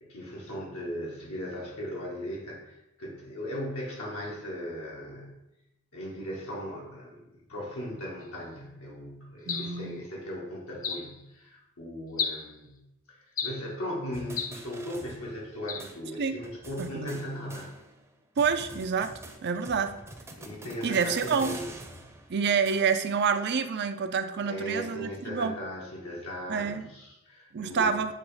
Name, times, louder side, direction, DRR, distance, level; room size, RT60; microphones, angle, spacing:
voice 1, 0.0-5.3 5.9-12.8 13.1-17.7 20.4-21.7 24.4-28.0, equal, 75° left, -4 dB, 1.7 m, -38 dB
sound 1, 9.5-9.8 10.8-11.1 12.2-12.5 13.4-13.7 14.4-14.6 15.7-15.9, left 6 dB, 35° left, 0.5 m, -33 dB
voice 2, 9.5-10.0 16.2-16.4 16.8-17.2 18.4-19.1 19.4-20.0 20.8-21.6 22.3-25.5 26.5-26.9 27.5-28.1, right 6 dB, 50° right, 9 dB, 0.5 m, -28 dB
sound 2, 14.1-15.5 15.8-15.9 16.4-18.1 18.4-23.2, right 2 dB, 10° right, 0.7 m, -46 dB
7.6 x 3.0 x 4.8 m, 0.88 s
head